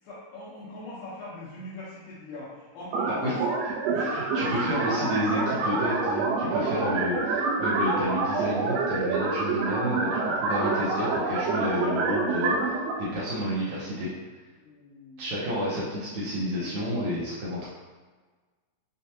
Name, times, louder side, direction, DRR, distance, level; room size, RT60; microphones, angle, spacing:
voice 1, 0.0-3.4 3.9-4.8 14.5-15.4, left 2 dB, 85° left, -9 dB, 2.6 m, -41 dB
sound 1, 2.9-12.9, right 3 dB, 90° right, 2.3 m, -27 dB
voice 2, 4.0-14.1 15.2-17.7, equal, 70° right, -7 dB, 1.9 m, -30 dB
6.3 x 2.3 x 2.7 m, 1.4 s
omnidirectional pair, 3.8 m